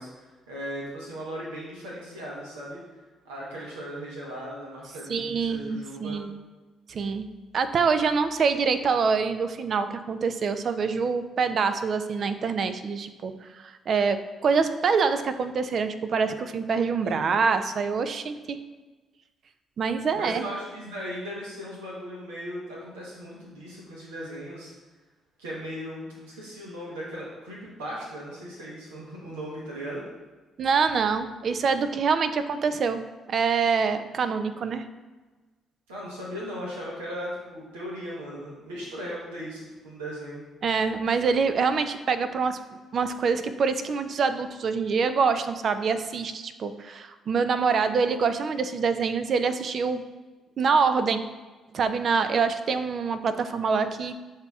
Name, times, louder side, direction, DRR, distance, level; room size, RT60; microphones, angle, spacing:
voice 1, 0.0-2.8 3.2-6.2 17.0-17.4 20.1-24.7 25.4-30.0 35.9-40.4, equal, 85° right, -5 dB, 1.0 m, -37 dB
voice 2, 5.1-6.3 6.9-7.2 7.5-18.6 19.8-20.5 30.6-34.8 40.6-42.6 42.9-50.0 50.6-51.2 51.7-54.2, right 5 dB, 55° right, 10 dB, 0.4 m, -25 dB
7.4 x 2.8 x 2.3 m, 1.3 s
hypercardioid pair, 45°, 0 cm